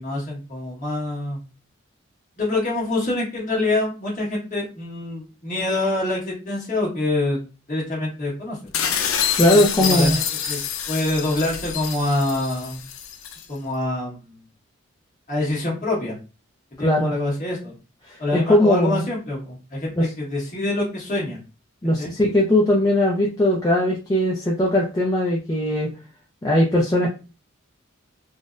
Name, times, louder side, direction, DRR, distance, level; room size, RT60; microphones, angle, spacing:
voice 1, 0.0-1.4 2.4-7.4 7.7-8.6 9.5-10.6 10.9-12.8 13.5-14.4 15.3-16.2 16.8-17.7 18.2-21.4 22.0-22.1, left 2 dB, 40° left, -4 dB, 1.4 m, -25 dB
sound 1, 8.7-13.4, left 8 dB, 80° left, 0.5 m, -26 dB
voice 2, 9.4-10.2 16.8-17.1 18.1-18.2 18.5-19.0 20.0-20.1 21.8-25.9 26.4-27.1, left 1 dB, 15° left, -3 dB, 0.4 m, -19 dB
3.8 x 2.1 x 2.5 m, 0.32 s
head